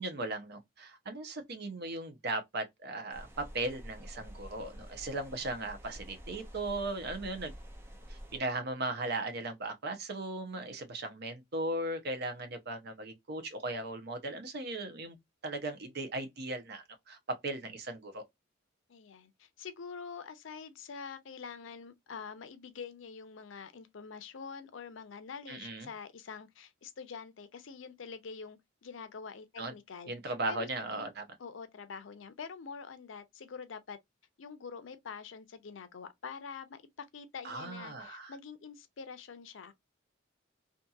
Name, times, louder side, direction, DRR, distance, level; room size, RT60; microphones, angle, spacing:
voice 1, 0.0-7.5 8.1-15.2 15.4-18.2 25.5-25.9 29.6-29.7 30.1-31.2 37.4-38.3, right 2 dB, 55° right, 0.7 m, -37 dB
sound 1, 3.1-8.4, equal, 10° right, 0.6 m, -48 dB
voice 2, 18.9-31.1 31.4-34.0 34.4-39.7, left 5 dB, 75° left, 0.5 m, -46 dB
2.7 x 2.5 x 2.3 m
head